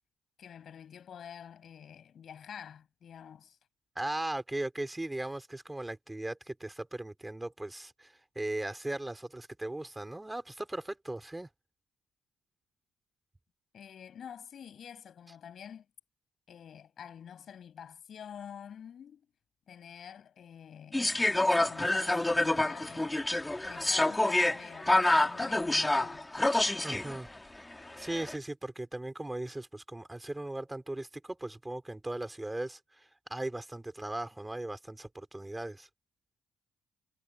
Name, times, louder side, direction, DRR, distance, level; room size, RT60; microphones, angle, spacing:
voice 1, 0.4-3.6 13.7-15.9 16.5-19.3 19.7-23.2 23.6-26.3, left 8 dB, 60° left, 7.9 m, -48 dB
voice 2, 3.9-11.5 26.8-27.3 28.0-35.9, right 1 dB, 15° right, 5.0 m, -38 dB
sound 1, 20.9-27.2 28.0-28.4, left 2 dB, 15° left, 3.4 m, -27 dB
supercardioid pair, 75°, 0 cm